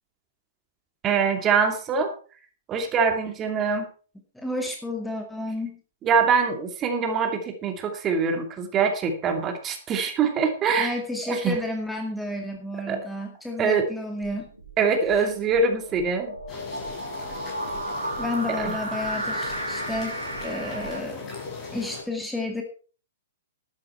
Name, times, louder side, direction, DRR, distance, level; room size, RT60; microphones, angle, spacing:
voice 1, 1.0-2.1 2.7-3.9 6.0-11.0 11.3-11.6 12.9-13.0 13.6-13.8 14.8-16.3 18.6-18.7, right 5 dB, 25° right, 5 dB, 2.7 m, -24 dB
voice 2, 4.4-5.8 10.8-14.5 18.2-21.2 21.7-22.6, left 2 dB, 5° left, 2 dB, 2.1 m, -31 dB
sound 1, 14.2-21.0, right 1 dB, 90° right, 3.3 m, -34 dB
sound 2, 16.5-22.0, left 4 dB, 25° left, 6.6 m, -37 dB
12.5 x 10.5 x 4.6 m, 0.38 s
figure-of-eight pair, 110°, 0 cm